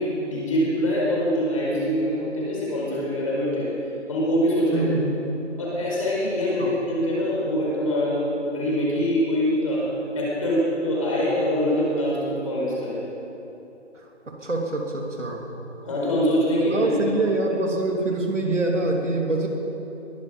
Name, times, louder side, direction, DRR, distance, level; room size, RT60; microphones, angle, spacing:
voice 1, 0.0-3.7 4.1-4.9 5.6-9.8 10.1-13.0 15.8-17.1, equal, 30° left, -6 dB, 4.8 m, -24 dB
voice 2, 4.7-5.2 6.6-6.7 13.9-15.5 16.7-19.5, right 2 dB, 80° right, 0 dB, 3.3 m, -25 dB
21.0 x 12.5 x 5.2 m, 3.0 s
figure-of-eight pair, 170°, 36 cm